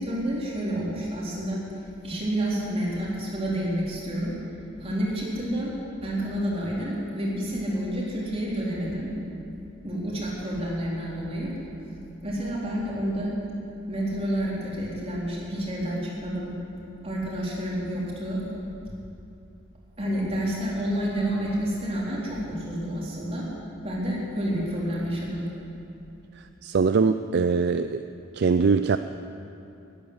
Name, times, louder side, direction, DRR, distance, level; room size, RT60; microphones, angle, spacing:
voice 1, 0.0-1.6 2.0-4.3 4.8-5.7 6.0-9.1 9.8-11.5 12.2-13.4 13.9-16.5 17.0-18.4 20.0-23.4 23.8-25.4, right 1 dB, 30° right, -6 dB, 3.9 m, -29 dB
voice 2, 26.6-28.0 28.3-29.0, right 5 dB, 55° right, 10 dB, 0.4 m, -22 dB
13.0 x 11.5 x 9.6 m, 2.7 s
head